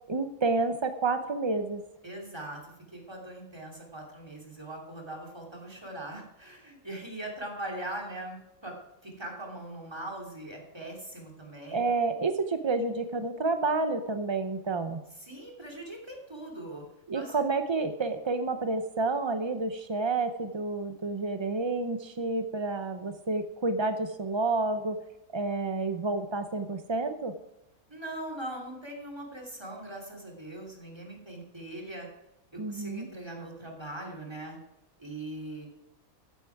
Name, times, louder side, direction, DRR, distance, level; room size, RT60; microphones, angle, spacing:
voice 1, 0.1-1.8 11.7-15.0 17.1-25.0 25.3-27.3 32.6-33.1, right 3 dB, 45° right, 8 dB, 0.3 m, -29 dB
voice 2, 2.0-8.8 9.0-11.9 15.2-16.8 17.1-17.4 27.9-32.1 32.5-34.6 35.0-35.7, right 1 dB, 15° right, 1 dB, 3.0 m, -41 dB
14.5 x 10.0 x 4.7 m, 0.87 s
omnidirectional pair, 1.6 m